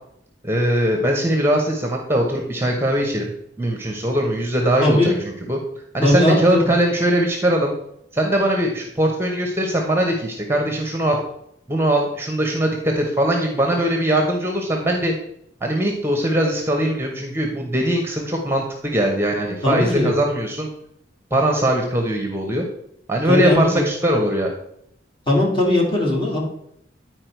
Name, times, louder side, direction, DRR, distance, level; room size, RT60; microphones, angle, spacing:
voice 1, 0.4-3.3 3.6-5.1 5.5-5.6 5.9-7.7 8.1-11.2 11.7-15.1 15.6-20.7 21.3-22.7 23.1-24.5, right 1 dB, 15° right, 2 dB, 0.9 m, -21 dB
voice 2, 4.8-5.1 6.0-6.6 19.6-20.1 23.3-23.8 25.3-26.4, left 1 dB, 30° left, -2 dB, 2.2 m, -18 dB
9.7 x 4.6 x 4.5 m, 0.75 s
head